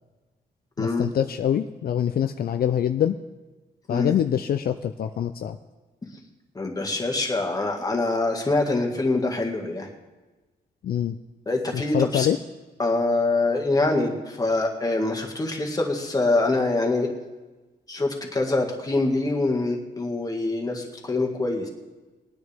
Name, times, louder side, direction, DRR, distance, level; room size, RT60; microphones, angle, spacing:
voice 1, 0.8-3.2 3.9-5.6 10.8-11.2 11.7-12.4, left 9 dB, 60° left, 8 dB, 0.5 m, -24 dB
voice 2, 6.5-9.9 11.4-12.3 12.8-17.1 17.9-21.7, left 2 dB, 20° left, 1 dB, 1.8 m, -24 dB
20.5 x 9.6 x 3.5 m, 1.2 s
cardioid pair, 115°, 17 cm